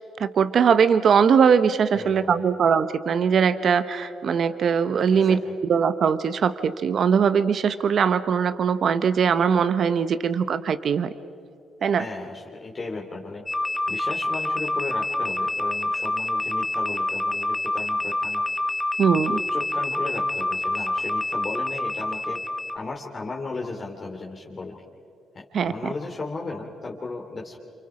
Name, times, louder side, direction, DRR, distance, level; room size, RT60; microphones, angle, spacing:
voice 1, 0.2-5.4 5.7-11.1 11.8-12.0 19.0-19.4 25.5-25.7, right 6 dB, 50° right, 12 dB, 0.8 m, -21 dB
voice 2, 1.9-2.3 5.1-5.5 12.0-13.4 13.9-18.4 19.1-22.4 22.7-24.8 25.3-27.6, left 3 dB, 30° left, -2 dB, 2.7 m, -35 dB
sound 1, 13.5-22.8, left 2 dB, 10° left, 1.0 m, -27 dB
28.5 x 28.5 x 4.9 m, 2.6 s
cardioid pair, 125°, 0 cm